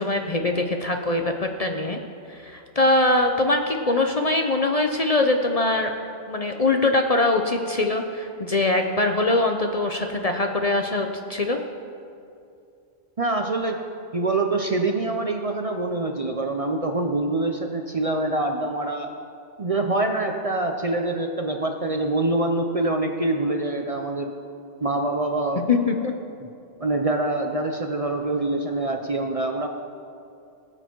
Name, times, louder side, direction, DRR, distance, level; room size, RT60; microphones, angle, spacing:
voice 1, 0.0-2.0 2.3-5.9 6.3-11.6 25.7-26.1, left 2 dB, 40° left, 4 dB, 0.7 m, -22 dB
voice 2, 13.2-13.8 14.1-19.1 19.6-24.3 24.8-25.6 26.4-26.5 26.8-29.7, right 2 dB, 35° right, 4 dB, 0.7 m, -25 dB
19.5 x 8.0 x 4.6 m, 2.5 s
omnidirectional pair, 1.2 m